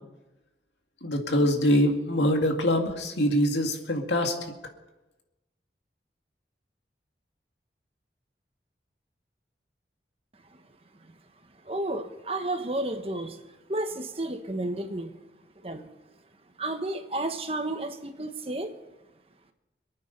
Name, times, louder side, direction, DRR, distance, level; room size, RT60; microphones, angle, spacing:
voice 1, 1.0-4.3, equal, 85° left, 3 dB, 2.3 m, -24 dB
voice 2, 11.6-15.2 15.6-15.9 16.6-18.7, right 2 dB, 35° right, 7 dB, 1.2 m, -32 dB
27.0 x 9.3 x 5.4 m, 1.0 s
head